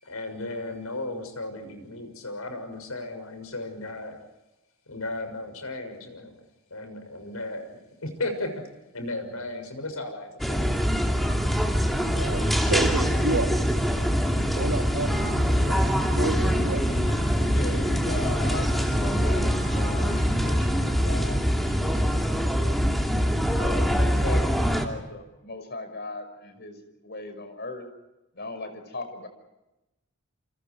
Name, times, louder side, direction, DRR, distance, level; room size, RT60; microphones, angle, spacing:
voice 1, 0.0-4.2 4.9-6.3 6.7-7.7 8.0-8.5 8.9-10.8, left 2 dB, 85° left, 7 dB, 6.6 m, -35 dB
sound 1, 10.4-24.9, equal, ahead, 2.8 m, -24 dB
Motorcycle, 12.0-24.2, equal, 25° left, 2.8 m, -35 dB
voice 2, 12.1-13.5 14.5-15.8 16.1-16.8, right 3 dB, 85° right, 3 dB, 3.2 m, -30 dB
voice 3, 17.1-22.7 23.6-27.9 28.3-29.3, left 2 dB, 50° left, 8 dB, 5.6 m, -39 dB
29.5 x 29.0 x 4.7 m, 0.98 s
head